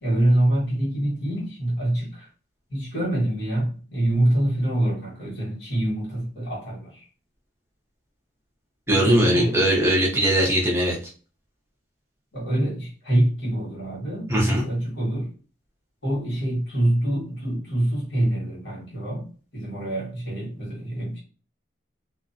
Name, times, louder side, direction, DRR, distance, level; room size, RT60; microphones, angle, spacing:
voice 1, 0.0-2.3 2.7-7.1 8.9-9.7 12.3-15.3 16.0-21.2, right 1 dB, 80° left, -5 dB, 1.3 m, -25 dB
voice 2, 8.9-11.0 14.3-14.7, equal, 15° right, -3 dB, 0.6 m, -20 dB
2.4 x 2.1 x 2.6 m, 0.38 s
head